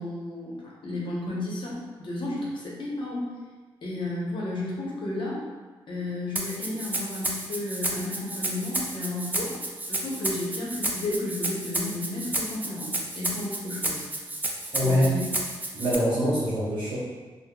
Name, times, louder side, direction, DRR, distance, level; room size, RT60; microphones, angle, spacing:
voice 1, 0.0-3.3 3.8-5.4 5.9-9.5 9.9-14.1 14.8-15.2, left 2 dB, 60° left, -4 dB, 0.8 m, -33 dB
Rattle (instrument), 6.4-16.0, right 1 dB, 20° right, 0.4 m, -31 dB
voice 2, 14.7-15.0 15.7-17.0, equal, 60° right, -9 dB, 0.8 m, -24 dB
3.4 x 2.1 x 2.3 m, 1.3 s
cardioid pair, 65°, 10 cm